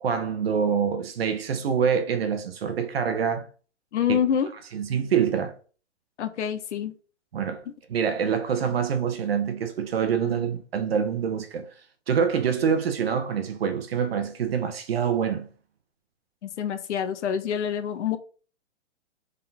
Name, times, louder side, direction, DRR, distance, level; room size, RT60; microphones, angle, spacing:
voice 1, 0.0-3.5 4.1-4.2 4.7-5.6 7.3-7.6 7.9-11.7 12.1-15.5, right 7 dB, 55° right, 0.7 m, -25 dB
voice 2, 3.9-4.5 6.2-6.9 7.7-7.8 10.2-10.4 16.4-18.2, left 8 dB, 75° left, 0.7 m, -27 dB
3.8 x 3.7 x 2.7 m
hypercardioid pair, 175°, 36 cm